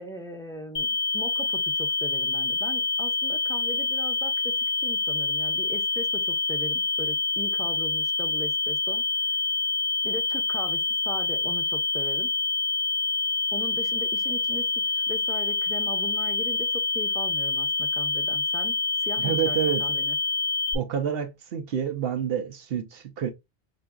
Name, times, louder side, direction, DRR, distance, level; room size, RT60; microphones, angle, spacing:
voice 1, 0.0-4.5 4.8-9.0 10.0-10.8 11.0-12.3 13.5-20.2, equal, 5° left, 0.5 m, -39 dB
sound 1, 0.8-20.8, left 3 dB, 65° left, 0.8 m, -27 dB
voice 2, 19.2-19.8 20.7-23.3, right 9 dB, 65° right, 0.8 m, -28 dB
5.8 x 2.5 x 2.2 m
omnidirectional pair, 1.1 m